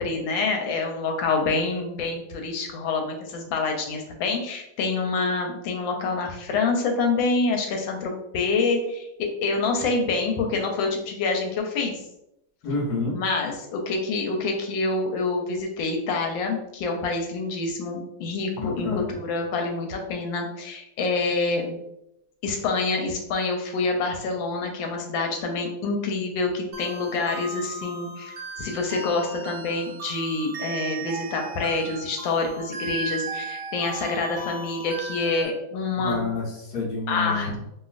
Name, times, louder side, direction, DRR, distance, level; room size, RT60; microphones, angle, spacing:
voice 1, 0.0-11.9 13.0-21.8 22.4-36.2 37.1-37.5, left 3 dB, 85° left, 2 dB, 1.4 m, -27 dB
voice 2, 12.6-13.2 18.5-19.0 35.9-37.5, left 3 dB, 65° left, -4 dB, 1.2 m, -28 dB
sound 1, 26.7-35.5, right 4 dB, 70° right, 1.1 m, -36 dB
3.0 x 2.5 x 2.4 m, 0.82 s
omnidirectional pair, 2.0 m